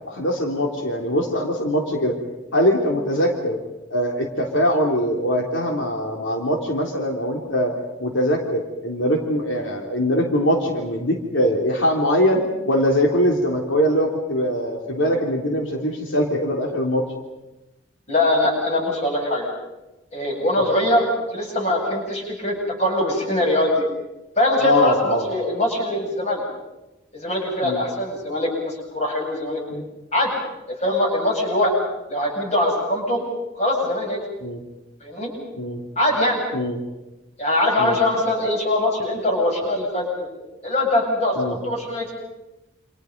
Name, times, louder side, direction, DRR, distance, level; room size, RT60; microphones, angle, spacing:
voice 1, 0.1-2.2 2.5-3.6 3.9-17.0 24.6-25.3 27.6-27.8 29.7-29.8 34.4-34.6 35.6-35.8 36.5-36.8 37.8-38.0 41.4-41.6, equal, 90° left, 1 dB, 3.5 m, -22 dB
voice 2, 18.1-19.5 20.1-23.9 24.4-26.4 27.1-29.6 30.1-30.4 30.8-31.7 32.1-33.2 33.5-34.2 35.0-35.3 36.0-36.4 37.4-40.3 40.6-42.1, left 1 dB, 35° left, 0 dB, 7.8 m, -22 dB
28.5 x 28.0 x 5.4 m, 1.0 s
head